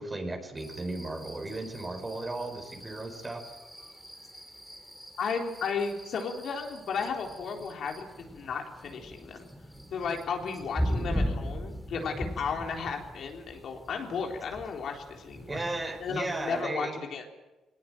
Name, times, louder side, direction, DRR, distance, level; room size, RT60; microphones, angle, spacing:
voice 1, 0.0-3.4 15.5-17.0, right 2 dB, 25° right, 6 dB, 4.8 m, -35 dB
sound 1, 0.6-16.6, equal, ahead, 3.4 m, -39 dB
voice 2, 5.2-9.5 9.9-15.5 16.0-17.2, left 5 dB, 65° left, 2 dB, 3.9 m, -34 dB
21.0 x 19.5 x 9.1 m, 1.1 s
cardioid pair, 90°, 0 cm